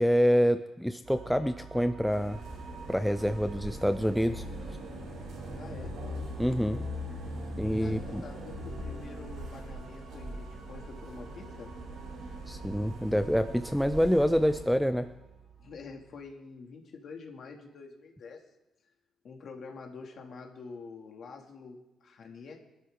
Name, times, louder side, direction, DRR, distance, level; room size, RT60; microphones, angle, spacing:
voice 1, 0.0-2.4 2.9-4.5 6.4-6.8 7.6-8.3 12.5-15.1, equal, ahead, 8 dB, 0.4 m, -26 dB
sound 1, 1.0-16.3, right 6 dB, 30° right, 4.0 m, -51 dB
sound 2, 2.1-14.6, equal, 80° right, 7.6 m, -41 dB
voice 2, 5.6-5.9 7.8-11.7 15.6-18.4 19.2-22.7, left 4 dB, 50° left, 1 dB, 2.4 m, -46 dB
24.0 x 13.0 x 3.8 m, 0.93 s
cardioid pair, 175°, 0 cm